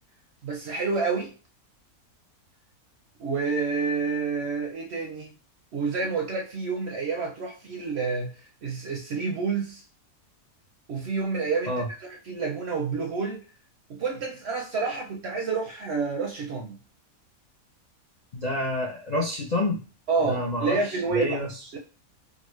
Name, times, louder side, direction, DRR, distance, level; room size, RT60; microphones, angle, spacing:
voice 1, 0.4-1.3 3.2-5.3 5.7-8.3 8.6-9.8 10.9-11.7 12.0-13.4 13.9-16.8 20.1-21.4 21.7-21.8, right 4 dB, 60° right, 1 dB, 0.7 m, -29 dB
voice 2, 18.3-19.8 20.3-21.6, left 1 dB, 70° left, -1 dB, 0.4 m, -28 dB
3.7 x 2.1 x 3.1 m, 0.34 s
omnidirectional pair, 1.6 m